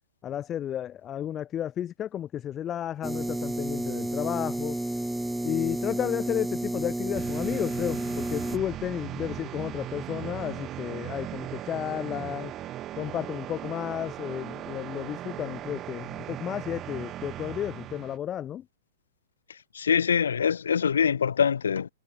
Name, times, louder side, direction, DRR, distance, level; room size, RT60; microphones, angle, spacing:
voice 1, 0.2-4.8 5.4-12.5 13.0-18.6, left 10 dB, 25° left, 5.8 m, -32 dB
sound 1, 3.0-8.6, right 1 dB, 5° right, 3.6 m, -31 dB
sound 2, 7.1-18.2, right 13 dB, 30° right, 5.4 m, -38 dB
voice 2, 19.7-21.9, left 7 dB, 75° left, 4.1 m, -24 dB
hypercardioid pair, 110°, 0 cm